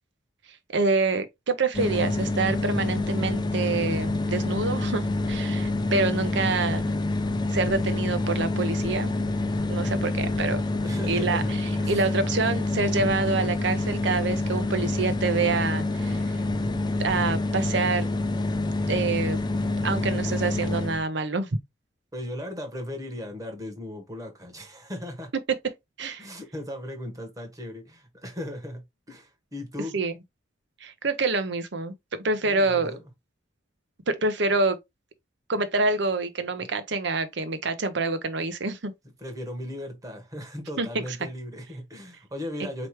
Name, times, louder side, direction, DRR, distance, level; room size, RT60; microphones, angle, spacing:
voice 1, 0.7-6.8 7.5-9.1 9.7-10.6 11.1-11.4 11.9-16.2 17.0-18.1 18.9-19.4 19.8-21.5 26.0-26.3 29.9-30.1 30.8-31.9 32.2-32.9 34.1-34.8 35.5-38.9 40.8-41.0, right 3 dB, 60° right, 0.8 m, -26 dB
sound 1, 1.7-21.0, left 2 dB, 25° left, 0.5 m, -27 dB
voice 2, 10.8-12.0 22.1-25.3 26.2-29.9 32.4-33.1 36.5-36.7 39.2-42.9, left 1 dB, 20° right, 1.2 m, -37 dB
4.5 x 3.0 x 3.0 m
head